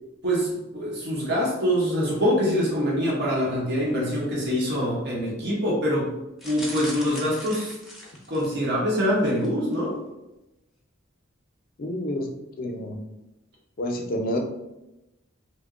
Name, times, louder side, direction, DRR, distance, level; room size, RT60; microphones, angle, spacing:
voice 1, 0.2-6.1 6.4-7.7 8.3-10.0, equal, 55° right, -5 dB, 0.9 m, -24 dB
sound 1, 6.4-8.7 9.2-9.5 9.7-9.8, equal, ahead, 0.6 m, -39 dB
voice 2, 11.8-12.3 12.6-13.0 13.8-14.4, left 1 dB, 45° left, 3 dB, 0.5 m, -28 dB
2.9 x 2.2 x 3.6 m, 0.95 s
head